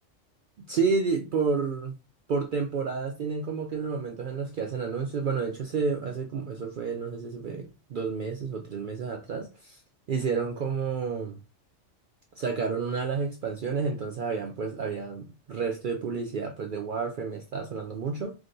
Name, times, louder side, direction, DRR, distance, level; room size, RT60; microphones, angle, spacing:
voice 1, 0.7-2.0 2.3-9.8 10.1-11.4 12.4-18.3, right 5 dB, 60° right, 0.5 m, -30 dB
4.6 x 2.1 x 2.6 m
omnidirectional pair, 1.3 m